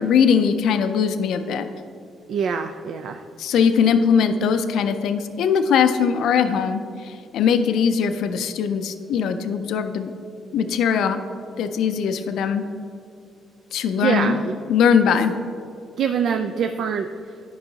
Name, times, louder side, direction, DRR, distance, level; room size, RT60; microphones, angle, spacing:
voice 1, 0.0-1.7 3.4-10.1 10.5-11.2 11.6-12.6 13.7-14.3 14.7-15.3, left 7 dB, 80° left, 9 dB, 0.4 m, -20 dB
voice 2, 2.3-3.2 14.0-14.5 16.0-17.4, right 6 dB, 70° right, 6 dB, 0.3 m, -24 dB
10.5 x 5.4 x 2.8 m, 2.4 s
cardioid pair, 90°, 0 cm